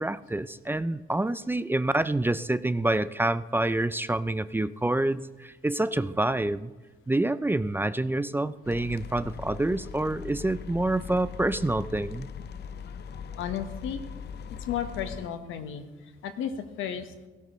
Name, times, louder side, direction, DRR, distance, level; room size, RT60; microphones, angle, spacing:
voice 1, 0.0-6.7 7.1-12.3, right 2 dB, 10° right, 14 dB, 0.4 m, -27 dB
sound 1, 8.6-15.3, left 7 dB, 55° left, 0.6 m, -40 dB
voice 2, 13.4-14.0 14.7-15.8 16.2-17.0, left 9 dB, 85° left, 8 dB, 1.3 m, -33 dB
17.0 x 16.5 x 3.2 m, 1.2 s
cardioid pair, 90°, 20 cm